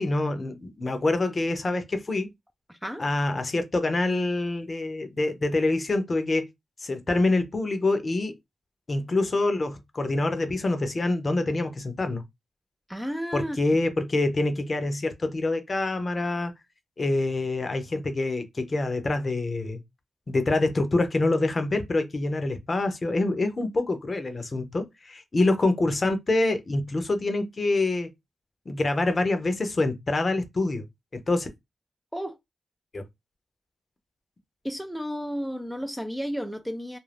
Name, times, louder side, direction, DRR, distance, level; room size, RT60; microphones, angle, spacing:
voice 1, 0.0-2.3 3.0-6.5 6.8-8.3 8.9-12.2 13.3-16.5 17.0-19.8 20.3-28.1 28.7-30.8 31.1-31.5 32.9-33.0, left 2 dB, 40° left, 0.7 m, -26 dB
voice 2, 2.7-3.1 12.9-13.6 32.1-32.4 34.6-37.0, equal, 5° right, 0.5 m, -32 dB
2.5 x 2.2 x 3.4 m
cardioid pair, 55°, 0 cm